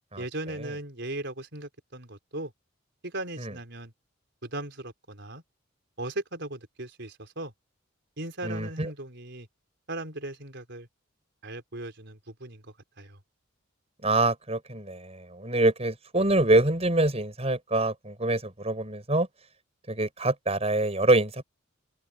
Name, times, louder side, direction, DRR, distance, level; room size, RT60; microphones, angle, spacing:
voice 1, 0.2-2.5 3.0-3.9 4.4-5.4 6.0-7.5 8.2-9.5 9.9-10.9 11.4-12.6 13.0-13.2, right 2 dB, 55° right, 4.8 m, -37 dB
voice 2, 8.4-8.9 14.0-19.3 19.9-21.4, right 2 dB, 30° right, 5.8 m, -25 dB
head